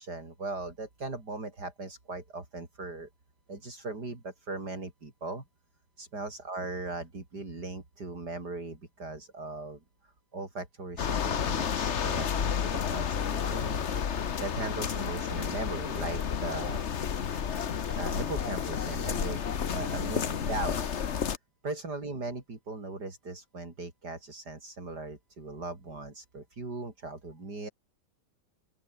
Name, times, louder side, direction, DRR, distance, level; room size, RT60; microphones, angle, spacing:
voice 1, 0.0-3.1 3.5-5.4 6.0-9.8 10.3-13.9 14.4-16.9 18.0-19.4 19.7-20.9 21.6-27.7, right 3 dB, 70° right, 5.3 m, -38 dB
sound 1, 11.0-21.4, left 7 dB, 45° left, 1.2 m, -31 dB
open air
omnidirectional pair, 1.8 m